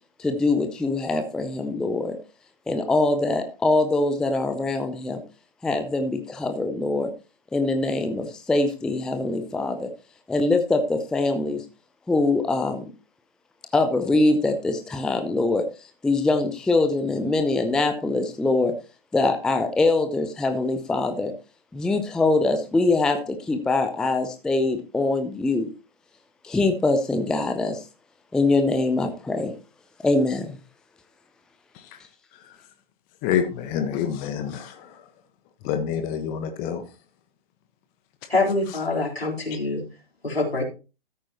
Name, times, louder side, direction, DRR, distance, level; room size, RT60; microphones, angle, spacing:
voice 1, 0.2-2.2 2.7-5.2 5.6-7.1 7.5-9.9 10.3-11.6 12.1-12.8 13.7-18.7 19.1-21.3 21.7-25.7 26.4-27.8 28.3-29.5 30.0-30.6, left 2 dB, ahead, 0.5 m, -23 dB
voice 2, 33.2-35.0 35.6-36.8, left 8 dB, 30° left, 1.2 m, -27 dB
voice 3, 38.3-39.8 40.2-40.6, left 2 dB, 80° left, 3.8 m, -25 dB
13.5 x 8.8 x 2.9 m
figure-of-eight pair, 115°, 30 cm